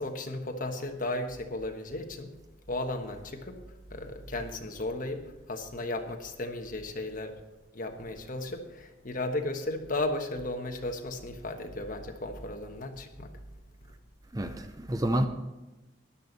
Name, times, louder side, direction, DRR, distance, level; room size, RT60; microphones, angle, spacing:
voice 1, 0.0-2.3 2.7-7.3 7.7-13.3 13.8-13.9, left 2 dB, 45° left, 1.3 m, -35 dB
voice 2, 14.3-15.3, right 1 dB, 20° right, 0.6 m, -28 dB
13.0 x 10.5 x 4.0 m
head